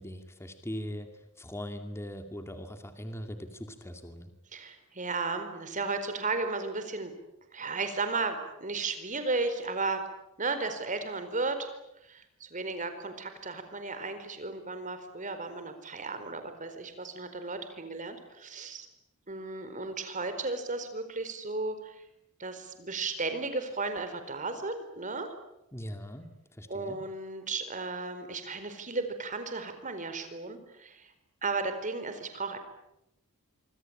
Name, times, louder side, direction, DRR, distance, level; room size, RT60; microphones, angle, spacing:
voice 1, 0.0-4.3 25.7-27.0, equal, 10° left, 6 dB, 2.5 m, -41 dB
voice 2, 4.5-7.1 7.5-10.0 10.4-11.7 12.0-18.9 19.3-22.0 22.4-25.3 26.7-31.1 31.4-32.6, right 3 dB, 35° right, 8 dB, 4.6 m, -34 dB
26.0 x 25.5 x 9.0 m, 0.87 s
head